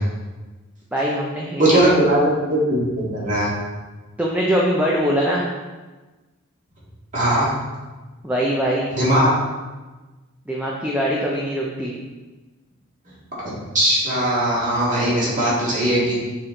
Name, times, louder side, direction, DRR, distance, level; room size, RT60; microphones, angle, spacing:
voice 1, 0.9-1.9 4.2-5.5 8.2-8.9 10.5-12.0, equal, 5° right, -4 dB, 0.6 m, -22 dB
voice 2, 1.6-3.5 7.1-7.5 8.9-9.3 13.4-16.1, right 1 dB, 35° right, -7 dB, 2.1 m, -19 dB
6.3 x 4.3 x 3.8 m, 1.2 s
head